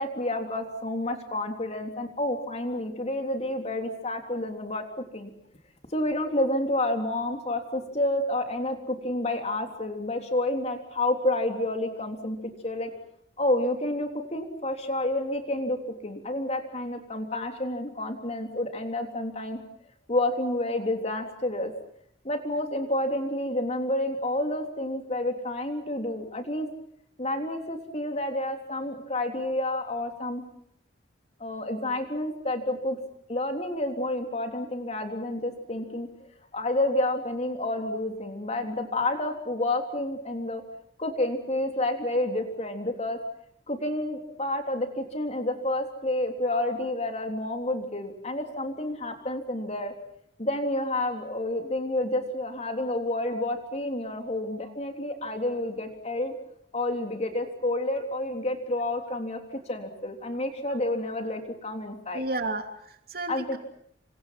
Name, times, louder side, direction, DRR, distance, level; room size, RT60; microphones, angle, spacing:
voice 1, 0.0-4.8 5.1-5.3 5.9-12.9 13.4-15.8 16.0-19.6 20.1-21.7 22.2-26.7 27.2-30.4 31.4-33.0 33.3-40.6 41.0-43.2 43.7-49.9 50.4-56.3 56.7-59.4 59.7-62.2 63.3-63.6, left 1 dB, 35° left, 5 dB, 3.5 m, -29 dB
voice 2, 61.8-63.6, right 2 dB, 55° right, 6 dB, 3.0 m, -33 dB
27.5 x 26.0 x 6.0 m, 0.70 s
head